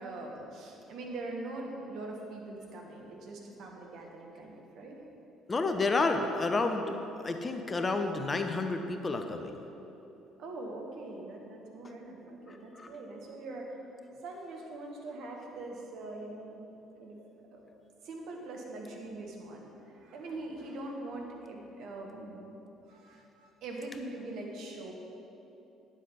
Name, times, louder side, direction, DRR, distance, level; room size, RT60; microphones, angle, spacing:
voice 1, 0.0-5.0 10.4-13.8 14.2-16.6 17.0-17.2 17.5-17.6 18.0-22.5 22.9-24.9, right 2 dB, 55° right, 0 dB, 1.4 m, -42 dB
voice 2, 5.5-9.6 12.5-12.9, left 3 dB, 25° left, 6 dB, 0.8 m, -30 dB
10.0 x 7.4 x 5.5 m, 3.0 s
figure-of-eight pair, 50°, 0 cm